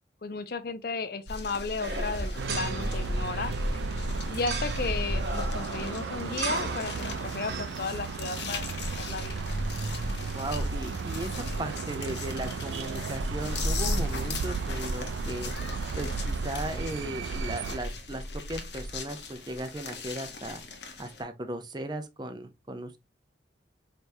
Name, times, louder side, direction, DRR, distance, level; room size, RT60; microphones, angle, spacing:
voice 1, 0.2-3.5 4.3-9.4, left 4 dB, 55° left, 0.6 m, -34 dB
sound 1, 1.3-21.2, left 1 dB, 70° left, 0.9 m, -35 dB
sound 2, 1.8-7.6, right 4 dB, 55° right, 0.8 m, -37 dB
sound 3, 2.4-17.8, right 5 dB, 85° right, 0.4 m, -35 dB
voice 2, 10.3-15.5 16.0-20.6 21.0-23.0, right 1 dB, 25° right, 0.5 m, -37 dB
4.5 x 3.4 x 2.6 m
head